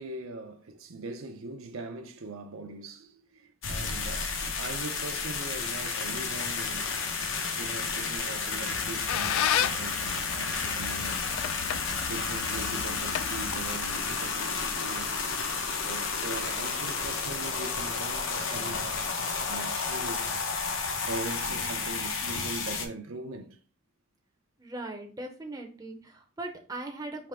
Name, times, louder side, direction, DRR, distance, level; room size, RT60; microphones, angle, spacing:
voice 1, 0.0-7.0 7.6-11.2 12.0-15.1 15.8-19.0 19.5-20.3 21.0-23.6, right 3 dB, 80° right, 0.6 m, -41 dB
sound 1, 3.6-22.9, left 5 dB, 65° left, 0.7 m, -32 dB
Squeak, 8.6-14.0, left 9 dB, 85° left, 0.3 m, -33 dB
voice 2, 24.6-27.3, right 2 dB, 15° right, 0.5 m, -39 dB
3.5 x 3.0 x 4.8 m
head